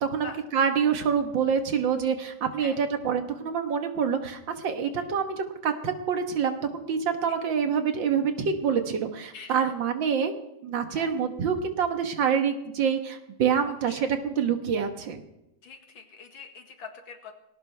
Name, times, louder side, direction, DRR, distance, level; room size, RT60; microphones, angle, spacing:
voice 1, 0.0-10.3 10.6-15.2, right 7 dB, 70° right, 6 dB, 2.0 m, -26 dB
voice 2, 9.3-9.7 10.9-11.1 13.6-14.0 15.6-17.3, left 4 dB, 80° left, 4 dB, 2.6 m, -44 dB
19.5 x 17.5 x 3.4 m, 0.91 s
omnidirectional pair, 2.1 m